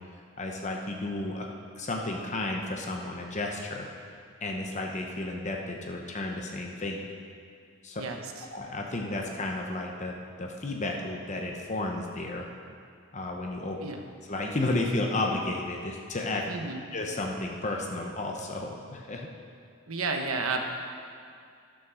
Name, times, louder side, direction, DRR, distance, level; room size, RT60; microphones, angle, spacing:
voice 1, 0.4-1.5 1.8-3.9 4.4-7.1 7.8-8.0 8.5-12.5 13.1-13.8 14.3-16.5 16.9-19.3, left 2 dB, 35° left, 1 dB, 0.8 m, -32 dB
voice 2, 16.5-16.8 19.9-20.6, right 4 dB, 85° right, 3 dB, 1.1 m, -31 dB
12.5 x 6.3 x 6.3 m, 2.3 s
head